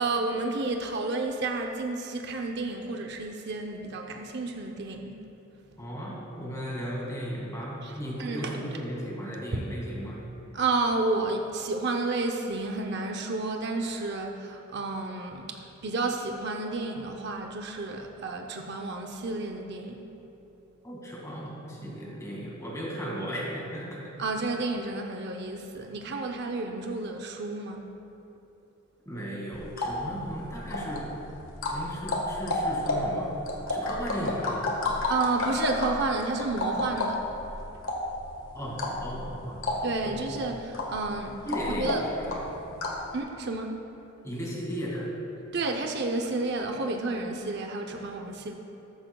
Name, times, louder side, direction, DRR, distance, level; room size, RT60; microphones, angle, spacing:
voice 1, 0.0-5.3 7.8-7.9 8.2-8.6 9.5-9.6 10.5-20.1 24.2-27.9 35.1-37.2 39.8-42.0 43.1-43.8 45.5-48.5, right 3 dB, 50° right, 3 dB, 0.6 m, -31 dB
voice 2, 5.8-10.3 20.8-24.0 29.1-31.1 31.7-33.3 33.7-34.6 38.5-40.3 41.4-42.5 44.2-45.1, equal, 15° left, -4 dB, 2.0 m, -36 dB
sound 1, 29.5-43.1, left 2 dB, 75° left, 1.5 m, -32 dB
14.0 x 12.5 x 2.3 m, 2.9 s
head